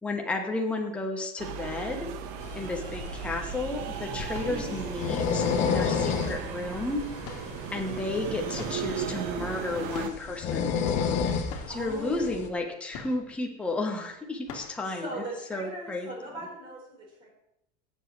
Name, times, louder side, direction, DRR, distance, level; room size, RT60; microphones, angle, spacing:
voice 1, 0.0-2.1 2.5-7.1 7.7-10.7 11.7-15.1 15.5-16.1, left 2 dB, 5° left, 1 dB, 0.9 m, -32 dB
sound 1, 1.4-10.1, right 7 dB, 45° right, 0.9 m, -36 dB
sound 2, 2.4-12.5, left 6 dB, 35° left, 1.0 m, -32 dB
sound 3, 4.3-4.8 5.7-6.2 7.2-7.7 8.5-8.9 9.9-10.3 10.6-10.7 11.1-11.2 11.5-11.9 12.9-13.5 13.9-14.0 14.4-14.9, left 6 dB, 55° left, 2.0 m, -43 dB
voice 2, 4.4-4.8 11.7-12.3 14.8-17.3, right 1 dB, 25° right, -3 dB, 4.3 m, -39 dB
16.5 x 7.2 x 3.2 m, 0.78 s
supercardioid pair, 165°, 21 cm